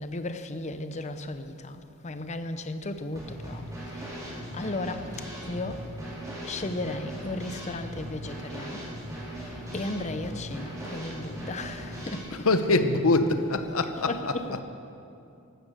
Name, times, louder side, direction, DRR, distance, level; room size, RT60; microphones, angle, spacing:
voice 1, 0.0-3.6 3.9-4.2 4.5-5.1 5.4-5.8 6.4-8.8 9.7-12.7 14.0-14.6, left 2 dB, 30° left, 0.7 m, -35 dB
Drum kit / Snare drum, 3.1-12.2, equal, 15° right, 4.8 m, -39 dB
voice 2, 12.3-14.6, left 2 dB, 70° left, 1.0 m, -24 dB
15.0 x 12.5 x 6.7 m
head